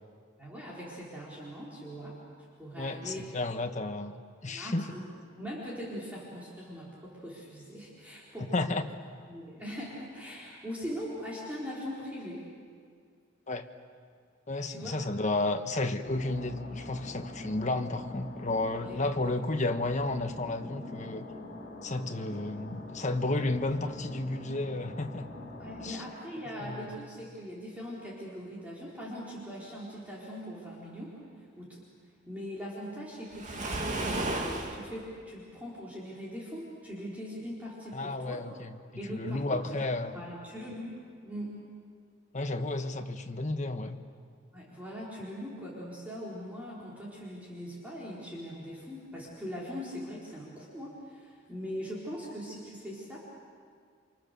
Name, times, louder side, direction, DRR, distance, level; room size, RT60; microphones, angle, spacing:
voice 1, 0.4-2.2 2.6-3.2 4.5-5.0 5.4-8.8 9.3-12.4 14.7-15.1 18.8-19.1 22.3-22.4 25.6-31.8 32.3-38.4 39.0-39.8 40.1-41.0 41.2-41.6 44.5-53.2, equal, 10° right, -7 dB, 4.4 m, -41 dB
voice 2, 2.8-4.1 4.4-5.0 8.5-8.8 13.5-13.7 14.5-21.3 21.8-25.3 25.8-26.0 26.6-26.9 37.9-38.7 39.1-40.2 42.3-44.0, left 2 dB, 40° left, 7 dB, 1.3 m, -32 dB
sound 1, 16.0-25.9, left 1 dB, 60° left, 5.3 m, -44 dB
Waves surf, 33.3-34.8, right 1 dB, 40° right, 2.5 m, -33 dB
29.0 x 26.5 x 6.9 m, 2.1 s
head